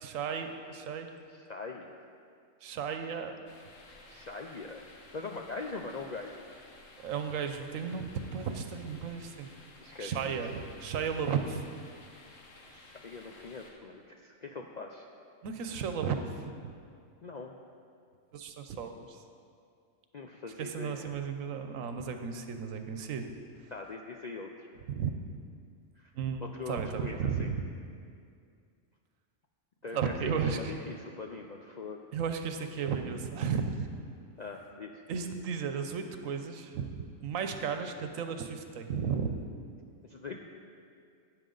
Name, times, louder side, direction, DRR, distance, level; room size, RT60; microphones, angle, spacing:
voice 1, 0.0-1.1 2.6-3.3 7.0-9.5 10.0-11.7 15.4-16.4 16.6-16.7 18.3-19.2 20.6-23.3 24.9-25.1 26.1-27.7 29.9-30.7 32.1-33.9 35.1-39.4, right 6 dB, 85° right, 7 dB, 1.1 m, -34 dB
voice 2, 1.3-1.9 4.1-4.9 5.1-6.4 9.8-10.4 12.7-15.1 17.2-17.6 20.1-21.1 23.7-24.7 26.0-26.1 26.4-27.5 29.8-32.0 34.4-35.0 40.1-40.4, left 3 dB, 60° left, 2 dB, 0.4 m, -42 dB
sound 1, 3.5-13.7, left 2 dB, 75° left, 1.5 m, -55 dB
12.5 x 9.0 x 3.9 m, 2.3 s
omnidirectional pair, 1.4 m